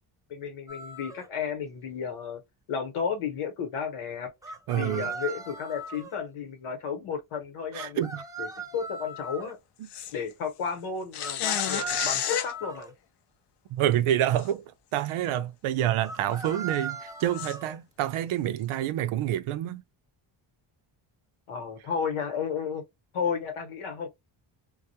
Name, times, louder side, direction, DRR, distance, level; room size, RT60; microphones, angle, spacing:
voice 1, 0.3-2.4 2.7-4.3 4.7-8.1 8.4-9.6 10.1-12.9 21.5-22.8 23.1-24.1, left 6 dB, 85° left, 1.0 m, -33 dB
sound 1, 0.7-1.3 4.4-6.2 7.7-9.5 11.2-12.9 16.0-17.8, right 4 dB, 10° right, 0.3 m, -38 dB
voice 2, 4.7-5.1 7.7-8.2 13.7-14.6 14.9-19.8, right 12 dB, 80° right, 0.6 m, -27 dB
sound 2, 9.9-10.1 11.1-12.5 14.4-14.5 15.0-15.1 17.4-17.5, left 10 dB, 55° left, 0.5 m, -29 dB
2.3 x 2.1 x 2.7 m
cardioid pair, 110°, 49 cm